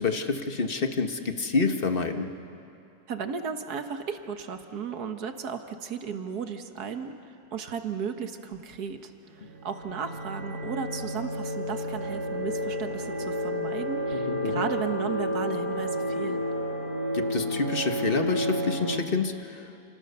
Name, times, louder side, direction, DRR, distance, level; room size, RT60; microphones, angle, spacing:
voice 1, 0.0-2.3 14.1-14.6 17.1-19.7, left 4 dB, 35° left, 6 dB, 1.3 m, -28 dB
voice 2, 3.1-16.4, right 6 dB, 55° right, 7 dB, 1.8 m, -35 dB
sound 1, 9.4-19.0, equal, 75° right, 3.5 m, -31 dB
30.0 x 26.0 x 6.8 m, 2.6 s
omnidirectional pair, 2.0 m